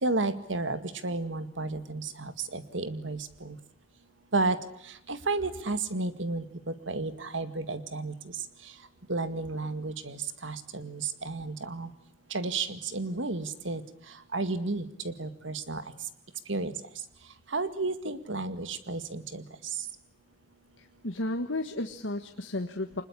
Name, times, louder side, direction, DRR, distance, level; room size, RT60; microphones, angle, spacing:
voice 1, 0.0-3.5 4.3-4.6 5.1-6.4 6.9-8.1 9.1-11.9 12.3-13.8 14.3-15.8 16.5-16.7 17.5-19.4, right 3 dB, 80° right, 11 dB, 2.1 m, -32 dB
voice 2, 20.8-23.0, left 2 dB, 85° left, 6 dB, 1.6 m, -33 dB
25.5 x 21.0 x 9.9 m, 0.73 s
head